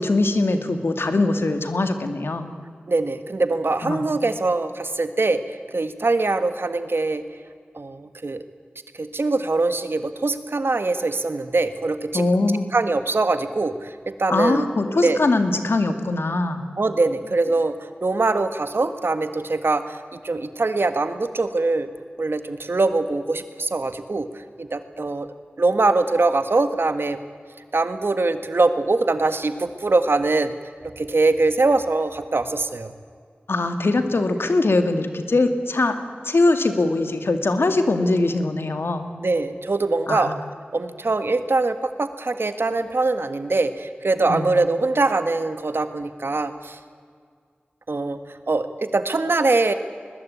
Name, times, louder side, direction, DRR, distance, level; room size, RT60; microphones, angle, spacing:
voice 1, 0.0-2.5 3.8-4.0 12.1-12.7 14.3-16.6 33.5-36.0 36.2-39.1 40.1-40.3 44.3-44.5, left 2 dB, 85° left, 7 dB, 2.1 m, -21 dB
voice 2, 2.9-5.4 5.7-7.2 7.7-8.4 9.0-12.2 12.7-14.7 15.0-15.2 16.8-21.9 22.2-24.3 24.6-25.3 25.6-27.2 27.7-30.5 31.0-32.9 39.2-40.4 40.7-46.8 47.9-48.2 48.5-49.7, right 3 dB, 75° right, 10 dB, 1.6 m, -22 dB
21.5 x 21.0 x 8.6 m, 2.1 s
wide cardioid pair, 45°, 4 cm